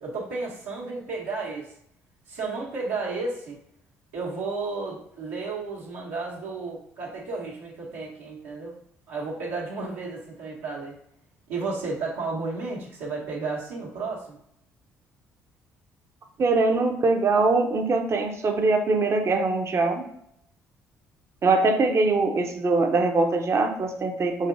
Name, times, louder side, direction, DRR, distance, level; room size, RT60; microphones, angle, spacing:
voice 1, 0.0-1.7 2.3-3.6 4.1-8.7 9.1-10.9 11.5-14.4, right 3 dB, 80° right, -6 dB, 1.3 m, -32 dB
voice 2, 16.4-20.0 21.4-24.5, right 3 dB, 40° right, 4 dB, 0.7 m, -22 dB
5.4 x 2.9 x 2.6 m, 0.71 s
hypercardioid pair, 50°, 7 cm